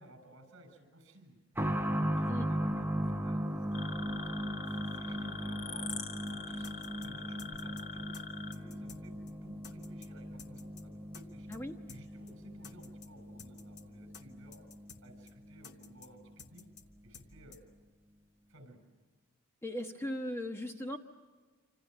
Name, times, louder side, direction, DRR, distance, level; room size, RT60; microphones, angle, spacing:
voice 1, 0.0-1.4 1.9-3.4 4.7-5.9 6.3-8.2 8.5-11.6 11.9-14.6 15.0-16.6 17.0-17.6 18.5-18.8, right 1 dB, 55° right, 8 dB, 7.5 m, -56 dB
sound 1, 1.6-16.0 16.3-16.4 17.3-17.4, equal, 10° right, 0.8 m, -38 dB
sound 2, 3.7-8.5, left 5 dB, 45° left, 2.2 m, -44 dB
sound 3, 5.9-6.0 6.3-6.4 6.6-7.1 7.4-7.8 8.1-8.2 8.5-9.0 9.3-9.4 9.6-10.1 10.4-10.8 11.1-11.2 11.5-11.6 11.9-12.0 12.3-12.4 12.6-13.1 13.4-13.8 14.1-14.2 14.5-15.0 15.3-15.4 15.6-16.1 16.4-16.8 17.1-17.3 17.5-17.6, left 6 dB, 75° left, 1.8 m, -52 dB
voice 2, 19.6-21.0, left 1 dB, 10° left, 4 dB, 1.1 m, -38 dB
28.5 x 26.5 x 6.7 m, 1.4 s
head